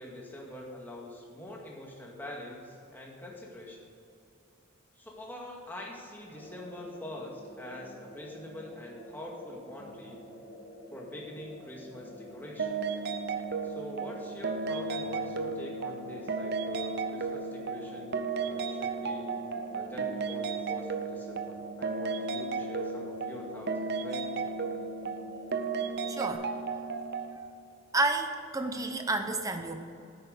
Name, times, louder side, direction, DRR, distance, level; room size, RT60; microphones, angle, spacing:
voice 1, 0.0-3.8 5.0-10.2 10.9-13.0 13.6-19.3 19.7-24.3, left 1 dB, 10° left, -2 dB, 2.1 m, -44 dB
sound 1, 6.3-26.3, equal, 75° left, 2.9 m, -49 dB
sound 2, 12.6-27.4, right 4 dB, 50° right, 0.7 m, -34 dB
voice 2, 26.1-26.5 27.9-29.8, right 2 dB, 15° right, 6 dB, 0.8 m, -30 dB
11.0 x 9.1 x 8.3 m, 2.6 s
head